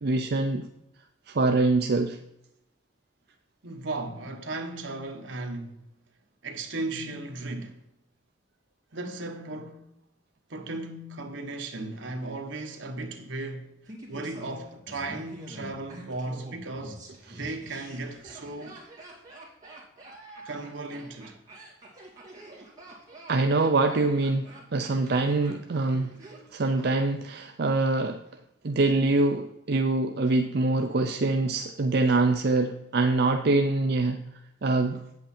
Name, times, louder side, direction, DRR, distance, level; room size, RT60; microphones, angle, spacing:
voice 1, 0.0-0.7 1.3-2.2 17.3-17.4 23.3-26.1 26.5-28.2 28.6-34.2 34.6-35.0, right 2 dB, 55° right, 0.5 m, -24 dB
voice 2, 3.6-5.7 6.4-7.8 8.9-9.9 10.5-13.7 14.1-17.0 17.4-18.8 20.4-21.4, right 2 dB, 75° right, 1.2 m, -36 dB
Laughter, 13.9-26.9 27.1-27.2, right 1 dB, 20° right, 2.4 m, -46 dB
8.7 x 7.9 x 4.4 m
head